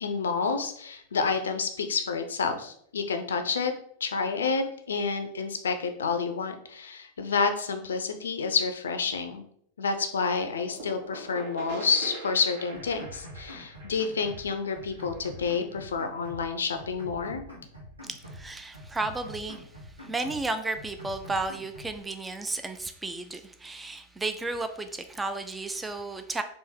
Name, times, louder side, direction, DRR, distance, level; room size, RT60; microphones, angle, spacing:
voice 1, 0.0-3.7 4.0-9.4 9.8-17.4, left 5 dB, 70° left, 7 dB, 0.5 m, -29 dB
sound 1, 10.5-16.0, right 2 dB, 60° right, 1.2 m, -43 dB
sound 2, 12.7-14.5 14.7-16.5 16.7-18.5 18.7-20.5 20.7-22.0, equal, 85° right, 1.3 m, -45 dB
voice 2, 18.1-26.4, right 3 dB, 10° right, 8 dB, 0.4 m, -33 dB
3.6 x 2.6 x 4.3 m, 0.66 s
figure-of-eight pair, 90°, 0 cm